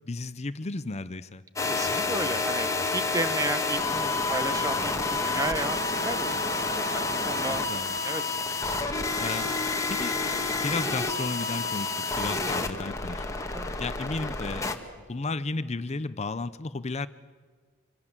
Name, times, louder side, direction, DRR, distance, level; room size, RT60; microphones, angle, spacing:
voice 1, 0.1-1.4 7.5-8.0 9.2-9.5 9.9-10.2 10.6-13.2 13.8-14.7 15.1-17.1, left 3 dB, 35° left, 14 dB, 0.7 m, -33 dB
sound 1, 1.6-14.7, left 3 dB, 15° left, 1.8 m, -29 dB
voice 2, 1.6-2.7 2.9-6.4 6.9-7.7 8.0-8.4 13.5-13.7, right 2 dB, 15° right, 11 dB, 1.1 m, -33 dB
27.0 x 24.5 x 7.4 m, 1.5 s
head